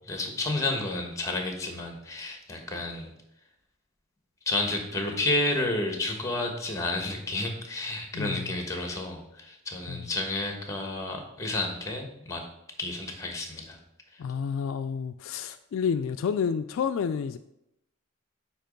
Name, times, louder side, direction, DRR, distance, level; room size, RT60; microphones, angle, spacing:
voice 1, 0.1-3.1 4.5-12.5 12.8-13.8, left 2 dB, 15° left, 4 dB, 1.1 m, -31 dB
voice 2, 8.1-8.5 9.9-10.1 14.2-17.4, left 6 dB, 65° left, 10 dB, 0.3 m, -30 dB
8.8 x 3.0 x 5.2 m, 0.83 s
head